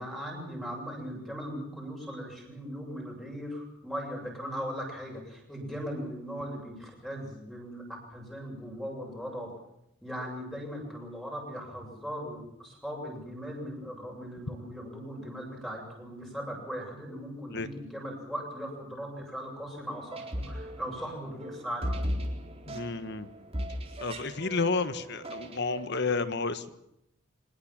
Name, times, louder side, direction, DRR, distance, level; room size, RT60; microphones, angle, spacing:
voice 1, 0.0-7.8 8.1-9.5 10.0-22.0, equal, ahead, -1 dB, 7.6 m, -39 dB
sound 1, 19.8-25.9, equal, 30° right, 4.1 m, -37 dB
voice 2, 22.7-23.3 24.0-26.7, left 4 dB, 55° left, 12 dB, 1.5 m, -31 dB
24.0 x 20.5 x 7.6 m, 0.81 s
head